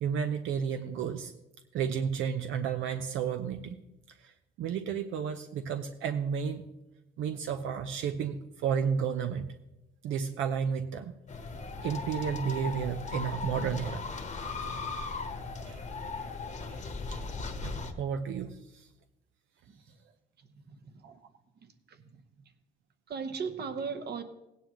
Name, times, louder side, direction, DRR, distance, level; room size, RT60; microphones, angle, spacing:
voice 1, 0.0-1.3 1.7-3.8 4.2-4.3 4.6-6.6 7.2-9.5 10.0-11.1 11.8-14.1 14.6-14.7 15.7-15.9 16.2-16.3 16.7-17.2 17.6-18.9 21.0-21.2, right 7 dB, 85° right, 0.7 m, -32 dB
sound 1, 11.3-17.9, left 4 dB, 35° left, 1.1 m, -37 dB
voice 2, 20.4-21.2 21.5-22.5 23.1-24.2, right 5 dB, 55° right, 1.0 m, -39 dB
16.5 x 9.4 x 3.0 m
cardioid pair, 90°, 20 cm